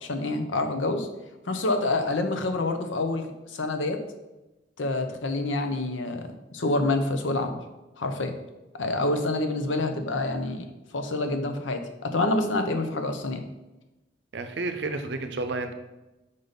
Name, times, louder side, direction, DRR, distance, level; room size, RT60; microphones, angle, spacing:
voice 1, 0.0-1.1 1.5-4.0 4.8-6.2 6.5-7.6 8.0-8.3 8.8-10.6 10.9-13.4, left 2 dB, 90° left, 6 dB, 0.7 m, -27 dB
voice 2, 14.3-15.7, right 3 dB, 65° right, 7 dB, 0.6 m, -31 dB
5.4 x 4.0 x 5.1 m, 1.0 s
head